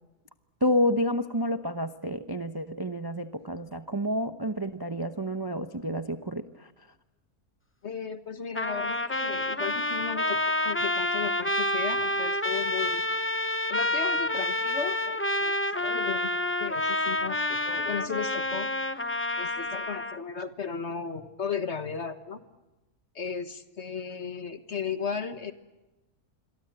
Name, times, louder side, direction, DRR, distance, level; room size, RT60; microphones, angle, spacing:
voice 1, 0.6-6.7, equal, 20° right, 9 dB, 0.7 m, -29 dB
voice 2, 7.8-13.0 13.7-16.3 16.6-18.7 19.4-22.4 23.2-25.5, left 6 dB, 45° left, 9 dB, 1.7 m, -35 dB
Trumpet, 8.5-20.2, left 1 dB, 15° left, 0.5 m, -28 dB
27.0 x 23.0 x 9.1 m, 1.1 s
omnidirectional pair, 1.6 m